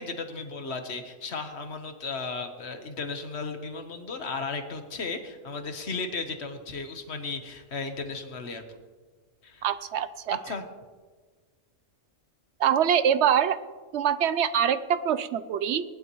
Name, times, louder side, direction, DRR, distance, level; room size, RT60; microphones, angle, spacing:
voice 1, 0.0-8.6 9.4-9.7 10.3-10.6, left 4 dB, 55° left, 6 dB, 1.4 m, -35 dB
voice 2, 9.6-10.4 12.6-13.6 13.9-15.8, right 9 dB, 65° right, 13 dB, 0.8 m, -24 dB
19.5 x 11.0 x 3.1 m, 1.4 s
omnidirectional pair, 1.4 m